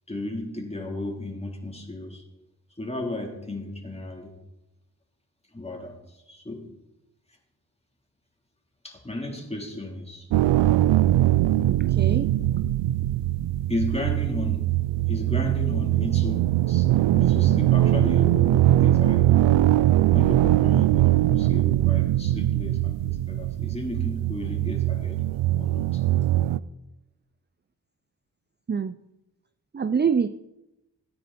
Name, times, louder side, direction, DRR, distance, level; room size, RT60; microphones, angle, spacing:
voice 1, 0.1-2.2 2.8-4.3 5.5-6.7 8.8-10.3 13.7-14.7 15.1-19.3 20.1-25.2 25.6-26.0, left 1 dB, 15° left, 0 dB, 3.7 m, -34 dB
sound 1, 10.3-26.6, right 14 dB, 85° right, 0.5 m, -21 dB
voice 2, 11.7-12.3 28.7-29.0 29.7-30.3, right 6 dB, 25° right, 13 dB, 0.6 m, -25 dB
17.0 x 9.3 x 4.3 m, 0.92 s
supercardioid pair, 45°, 43 cm